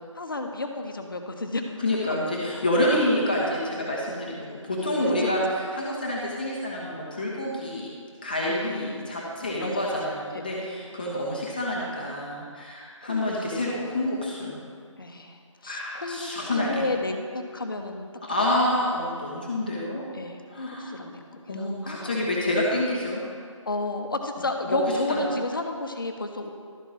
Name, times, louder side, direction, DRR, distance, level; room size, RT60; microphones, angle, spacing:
voice 1, 0.1-1.6 5.2-5.3 8.6-10.9 13.0-13.6 15.0-18.1 20.1-22.2 23.7-26.5, left 2 dB, 40° left, 5 dB, 0.8 m, -33 dB
voice 2, 1.8-7.9 8.2-14.6 15.7-16.8 18.2-20.0 20.5-20.9 21.5-23.2 24.7-24.8 25.1-25.2, left 1 dB, 15° left, -4 dB, 0.8 m, -27 dB
12.0 x 4.5 x 5.5 m, 2.1 s
figure-of-eight pair, 165°, 17 cm